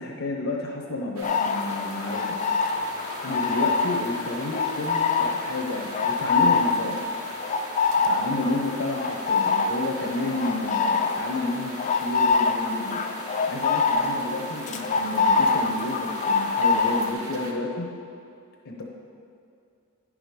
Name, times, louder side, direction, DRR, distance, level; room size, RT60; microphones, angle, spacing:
voice 1, 0.0-2.4 3.2-7.1 8.0-13.0 13.5-17.9 18.6-18.8, left 2 dB, 75° left, -1 dB, 0.9 m, -31 dB
sound 1, 1.2-17.1, left 4 dB, 35° left, 0.3 m, -25 dB
sound 2, 1.2-17.5, right 2 dB, 80° right, 1.1 m, -41 dB
10.0 x 5.0 x 5.1 m, 2.5 s
head